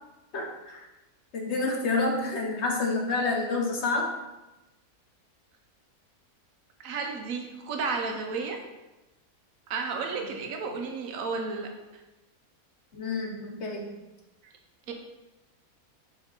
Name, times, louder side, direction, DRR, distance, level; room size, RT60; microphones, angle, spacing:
voice 1, 0.3-0.9 1.3-4.1 12.9-13.9, left 3 dB, 55° left, 0 dB, 1.1 m, -28 dB
voice 2, 6.8-8.6 9.7-11.7 14.9-15.0, right 4 dB, 70° right, 3 dB, 1.2 m, -32 dB
5.2 x 4.6 x 4.0 m, 1.0 s
omnidirectional pair, 1.6 m